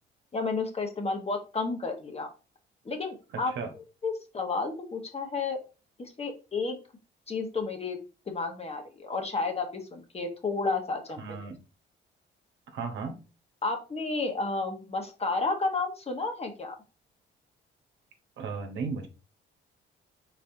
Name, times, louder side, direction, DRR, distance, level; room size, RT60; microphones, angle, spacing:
voice 1, 0.3-2.3 2.8-3.5 4.0-5.6 6.0-6.8 7.3-8.0 8.3-11.3 13.6-16.7, left 3 dB, 30° left, 4 dB, 1.1 m, -31 dB
voice 2, 11.2-11.6 12.7-13.2 18.4-19.1, right 5 dB, 70° right, 4 dB, 1.1 m, -35 dB
4.3 x 4.1 x 2.7 m, 0.32 s
cardioid pair, 90°, 20 cm